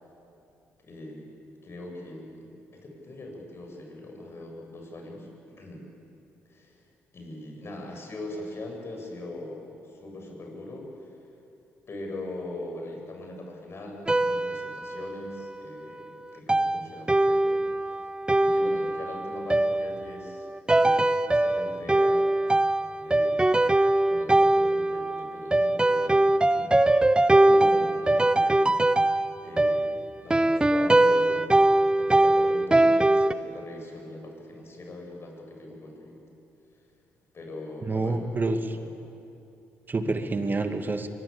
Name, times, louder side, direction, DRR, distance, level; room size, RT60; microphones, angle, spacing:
voice 1, 0.8-1.3 1.6-5.8 6.5-6.8 7.1-11.1 11.9-18.1 18.4-22.3 23.0-23.7 24.1-26.8 27.4-29.0 29.4-36.2 37.3-38.2 38.7-39.0, left 2 dB, 45° left, 1 dB, 7.8 m, -41 dB
sound 1, 14.1-15.6 16.5-33.3, right 2 dB, 15° right, 0.9 m, -22 dB
voice 2, 37.9-38.8 39.9-41.1, right 3 dB, 35° right, 7 dB, 2.4 m, -27 dB
23.0 x 22.5 x 8.8 m, 2.7 s
hypercardioid pair, 50°, 6 cm